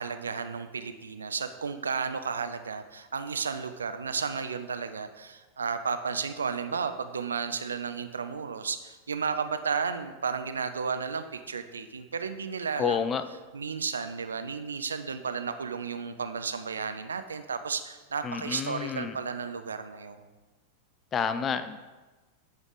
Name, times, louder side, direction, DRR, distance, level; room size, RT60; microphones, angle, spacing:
voice 1, 0.0-13.1 13.5-20.2, right 5 dB, 70° right, 9 dB, 0.4 m, -33 dB
voice 2, 12.8-13.2 18.2-19.1 21.1-21.8, left 7 dB, 25° left, 12 dB, 0.4 m, -29 dB
8.8 x 3.5 x 3.9 m, 1.2 s
figure-of-eight pair, 90°, 0 cm